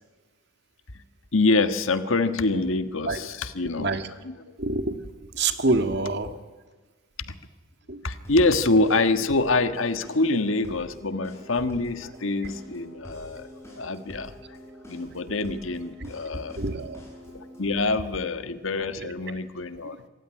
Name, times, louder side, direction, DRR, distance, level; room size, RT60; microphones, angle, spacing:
voice 1, 1.3-3.9 4.2-4.3 7.3-7.4 8.0-13.5 13.8-14.6 14.9-16.6 17.6-20.0, left 3 dB, 80° left, 10 dB, 1.5 m, -25 dB
voice 2, 3.8-4.1 4.6-6.3 7.9-8.0 16.0-16.1 16.6-17.0 17.3-17.4 19.0-19.4 19.8-19.9, right 3 dB, 55° right, 8 dB, 1.8 m, -27 dB
sound 1, 8.2-17.8, equal, 15° left, 7.6 m, -46 dB
26.0 x 15.5 x 9.8 m, 1.3 s
head